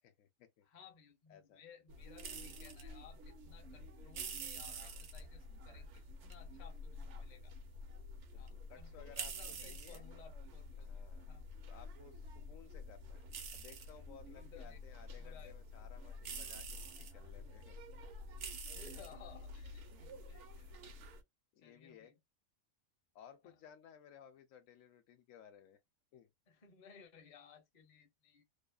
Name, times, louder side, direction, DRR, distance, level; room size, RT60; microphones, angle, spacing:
voice 1, 0.0-0.7 1.3-1.6 8.3-10.0 10.8-11.3 11.7-13.2 13.5-17.8 21.5-22.1 23.1-25.8 26.1-26.3, left 8 dB, 80° left, 0.9 m, -59 dB
voice 2, 0.6-7.5 8.4-10.9 11.3-11.5 14.3-15.6 18.7-20.7 21.6-22.2 23.4-23.5 26.5-28.4, left 7 dB, 45° left, 0.6 m, -60 dB
sound 1, 1.9-21.2, right 1 dB, 70° right, 0.9 m, -48 dB
2.6 x 2.3 x 2.3 m
omnidirectional pair, 1.4 m